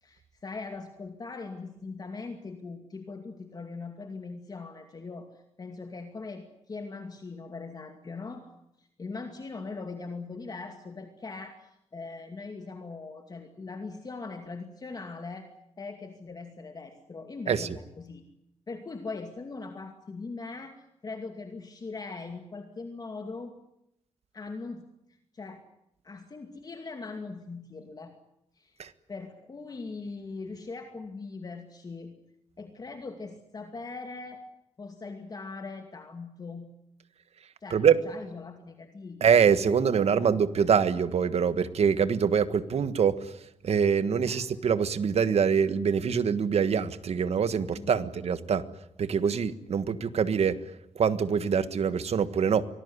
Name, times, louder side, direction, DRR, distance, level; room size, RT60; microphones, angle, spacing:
voice 1, 0.0-8.5 8.8-15.5 15.8-18.2 18.7-23.5 24.3-24.8 25.3-25.6 26.0-28.1 28.6-28.8 29.1-32.1 32.6-34.4 34.8-36.7 37.6-39.3 39.7-40.3 42.7-42.8 44.2-44.4 47.7-48.1, left 4 dB, 35° left, 5 dB, 2.4 m, -41 dB
voice 2, 39.2-43.3 43.6-48.6 49.0-50.6 50.9-52.7, right 7 dB, 65° right, 13 dB, 1.5 m, -24 dB
25.0 x 19.5 x 9.8 m, 0.80 s
wide cardioid pair, 165°, 11 cm